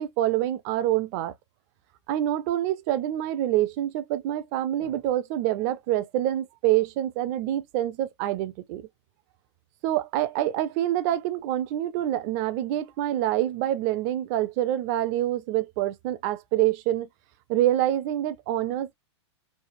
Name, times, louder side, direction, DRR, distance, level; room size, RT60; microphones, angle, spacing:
voice 1, 0.0-1.3 2.1-8.9 9.8-17.1 17.5-18.9, right 13 dB, 35° right, 0.4 m, -26 dB
3.2 x 2.0 x 2.5 m
hypercardioid pair, 145°, 15 cm